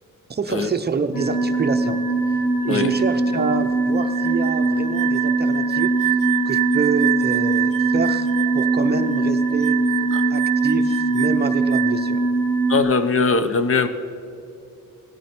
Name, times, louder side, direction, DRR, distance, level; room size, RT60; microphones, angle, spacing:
voice 1, 0.3-2.0 2.6-5.9 6.5-8.3 8.5-9.8 10.3-12.3, right 5 dB, 30° right, 7 dB, 0.6 m, -26 dB
sound 1, 1.1-12.8, right 2 dB, 70° left, 2.9 m, -21 dB
sound 2, 4.0-12.2, right 15 dB, 70° right, 0.5 m, -27 dB
voice 2, 12.7-13.9, left 4 dB, 40° left, 11 dB, 0.7 m, -20 dB
17.5 x 13.0 x 4.4 m, 2.7 s
wide cardioid pair, 160°, 33 cm